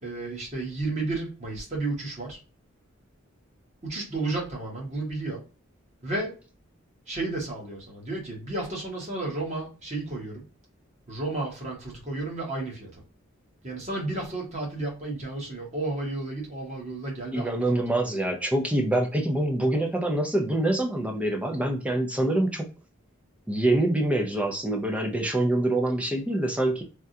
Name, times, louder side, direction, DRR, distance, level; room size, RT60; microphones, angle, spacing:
voice 1, 0.0-2.4 3.8-5.4 6.0-6.4 7.1-10.4 11.1-12.9 13.6-18.1, right 2 dB, 35° right, -2 dB, 1.3 m, -32 dB
voice 2, 17.3-22.7 23.5-26.8, right 1 dB, 5° right, 3 dB, 0.5 m, -25 dB
3.5 x 2.3 x 2.7 m, 0.34 s
head